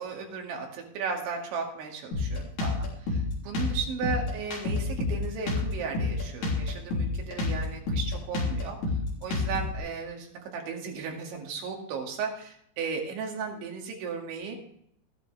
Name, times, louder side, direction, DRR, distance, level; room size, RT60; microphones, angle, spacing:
voice 1, 0.0-8.8 9.2-14.6, right 5 dB, 75° right, 1 dB, 4.5 m, -35 dB
Drum kit, 2.1-9.8, left 3 dB, 40° left, 4.2 m, -29 dB
13.5 x 12.0 x 3.4 m, 0.70 s
omnidirectional pair, 5.5 m